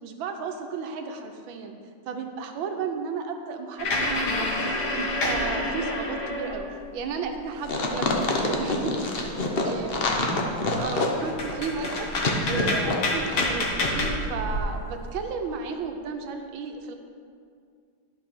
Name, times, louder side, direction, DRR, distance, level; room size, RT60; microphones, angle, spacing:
voice 1, 0.0-1.7 2.1-4.5 4.9-6.6 6.9-10.1 10.8-16.9, right 5 dB, 80° right, 5 dB, 1.5 m, -34 dB
sound 1, 3.8-6.8 7.3-8.8 9.2-9.3 9.6-10.1 10.8-10.9 11.2-14.6, left 1 dB, 80° left, 2.1 m, -28 dB
sound 2, 7.6-13.5 13.8-13.9, left 3 dB, 45° left, 0.8 m, -27 dB
voice 2, 10.0-10.9, right 1 dB, 15° right, -1 dB, 0.7 m, -35 dB
11.5 x 4.8 x 6.0 m, 2.2 s
omnidirectional pair, 2.1 m